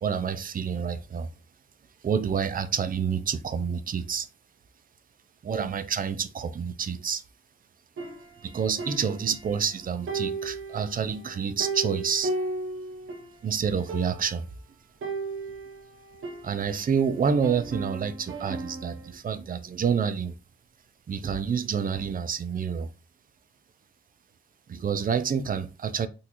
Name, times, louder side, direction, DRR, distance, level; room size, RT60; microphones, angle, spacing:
voice 1, 0.0-1.3 2.0-4.3 5.4-7.2 8.4-12.3 13.4-14.5 16.4-20.4 21.1-22.9 24.7-26.1, right 6 dB, 45° right, 0.4 m, -28 dB
sound 1, 8.0-9.7 10.1-13.4 13.6-13.7 13.9-14.5 15.0-17.0 17.4-19.1, right 3 dB, 90° right, 0.6 m, -35 dB
3.8 x 2.4 x 2.8 m
wide cardioid pair, 145°, 21 cm